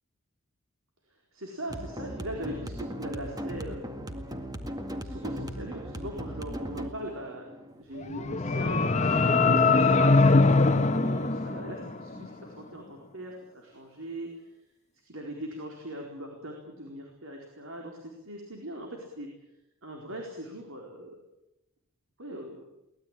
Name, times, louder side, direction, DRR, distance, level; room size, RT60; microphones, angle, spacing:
voice 1, 1.1-3.8 5.0-7.5 7.8-14.3 14.9-19.3 19.8-21.2 22.2-22.6, right 1 dB, 70° right, 0 dB, 4.3 m, -40 dB
sound 1, 1.7-8.7, equal, 20° right, 1.9 m, -38 dB
sound 2, 8.0-12.2, left 3 dB, 35° left, 1.1 m, -22 dB
23.5 x 19.0 x 9.1 m, 0.91 s
head